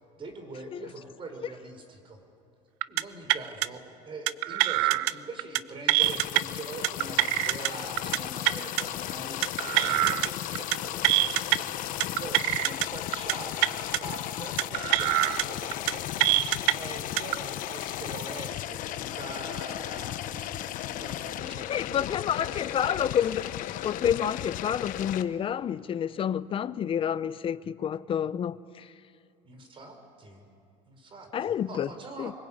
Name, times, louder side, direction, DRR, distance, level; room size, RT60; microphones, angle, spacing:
voice 1, 0.2-2.2 2.9-11.8 12.2-16.4 16.7-23.3 29.4-30.4 30.9-32.3, right 3 dB, 30° right, 4.7 m, -43 dB
sound 1, 2.8-3.0 3.3-3.7 4.3-5.1 5.4-5.6 5.9-6.4 6.8-7.7 8.0-8.2 8.5-8.8 9.4-10.3 10.6-10.8 11.0-11.6 12.0-12.9 13.1-13.3 13.6-14.0 14.6-15.4 15.7-15.9 16.2-16.7 17.2-17.4, right 18 dB, 80° right, 0.6 m, -24 dB
sound 2, 6.0-25.2, left 13 dB, 55° left, 1.1 m, -35 dB
voice 2, 21.7-23.5 23.8-28.9 31.3-31.9 32.2-32.3, left 9 dB, 35° left, 0.7 m, -29 dB
24.5 x 23.5 x 8.7 m
supercardioid pair, 115°, 16 cm